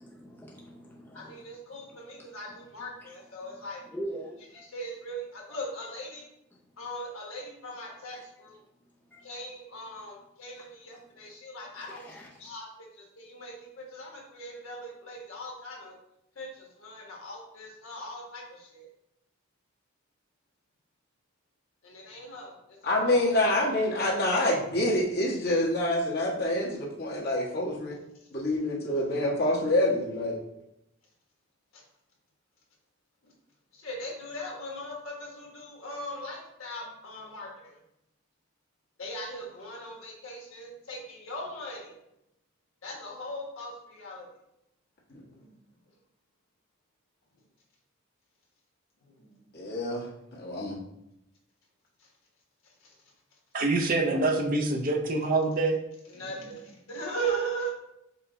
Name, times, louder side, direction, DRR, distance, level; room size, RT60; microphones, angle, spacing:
voice 1, 0.0-1.4 1.9-2.0 3.0-3.1 3.9-4.7 9.1-9.3 11.9-12.3, right 1 dB, 10° left, -4 dB, 0.5 m, -42 dB
voice 2, 1.1-3.8 4.5-6.3 6.8-8.6 9.2-15.9 16.3-18.9 21.8-22.8 23.0-23.4 24.0-24.3 31.7-31.8 33.2-33.3 33.7-37.8 39.0-42.0 42.8-44.3 45.2-45.6 49.0-49.5 52.0-52.1 52.8-53.0 56.1-57.7, right 1 dB, 80° left, -1 dB, 1.2 m, -39 dB
voice 3, 22.8-27.9 28.3-30.4 45.1-45.2 49.5-50.0 50.3-50.8, left 1 dB, 50° left, -5 dB, 1.3 m, -27 dB
voice 4, 53.5-55.8, right 2 dB, 40° right, 2 dB, 0.5 m, -25 dB
5.5 x 2.2 x 3.9 m, 0.84 s
head